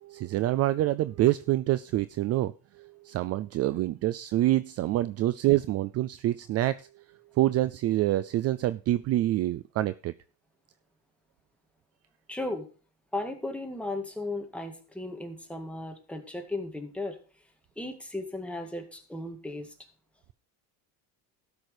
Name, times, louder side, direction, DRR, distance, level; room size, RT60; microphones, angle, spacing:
voice 1, 0.0-6.9 7.4-10.1, right 15 dB, 40° right, 0.4 m, -26 dB
voice 2, 12.3-12.7 13.1-17.2 17.8-19.7, left 2 dB, 5° left, 2.0 m, -35 dB
13.0 x 6.2 x 4.9 m
cardioid pair, 125°, 39 cm